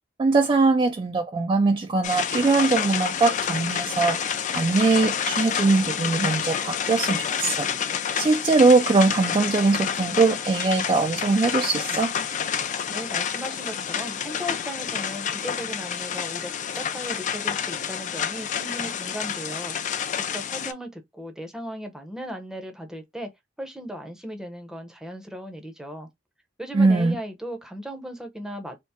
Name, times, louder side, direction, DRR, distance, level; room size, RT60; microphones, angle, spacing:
voice 1, 0.2-4.2 4.5-7.7 8.2-12.1 26.7-27.2, right 3 dB, 25° right, 0.3 m, -21 dB
sound 1, 2.0-20.7, left 8 dB, 40° left, 0.4 m, -29 dB
voice 2, 12.9-19.7 20.1-23.3 23.6-26.1 26.6-28.8, equal, 5° right, 0.7 m, -36 dB
3.5 x 2.0 x 4.0 m
head